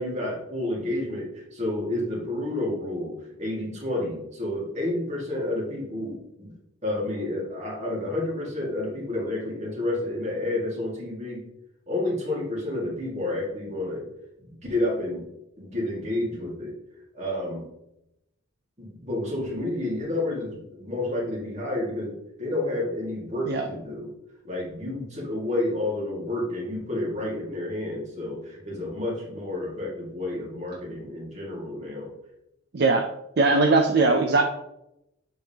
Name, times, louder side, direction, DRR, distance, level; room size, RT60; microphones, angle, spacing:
voice 1, 0.0-6.5 6.8-11.4 11.9-14.0 14.4-15.2 15.6-16.7 17.1-17.7 18.8-22.1 22.4-24.1 24.4-32.1, left 1 dB, 35° right, -3 dB, 2.1 m, -30 dB
voice 2, 32.7-33.1 33.4-34.4, right 3 dB, 50° right, 4 dB, 0.5 m, -20 dB
7.6 x 5.3 x 2.9 m, 0.85 s
head